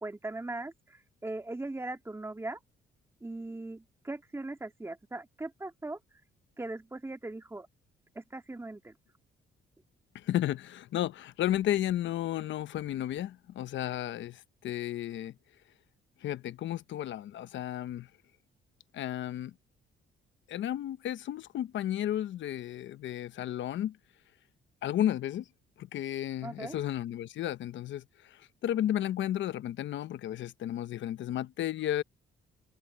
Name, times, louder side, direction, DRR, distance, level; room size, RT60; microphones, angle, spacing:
voice 1, 0.0-2.6 3.2-6.0 6.6-7.7 8.1-8.9 26.4-26.8, right 2 dB, 15° right, 2.3 m, -39 dB
voice 2, 10.1-15.3 16.2-18.1 18.9-19.5 20.5-24.0 24.8-25.4 25.8-32.0, left 12 dB, 70° left, 0.9 m, -33 dB
cardioid pair, 90°, 20 cm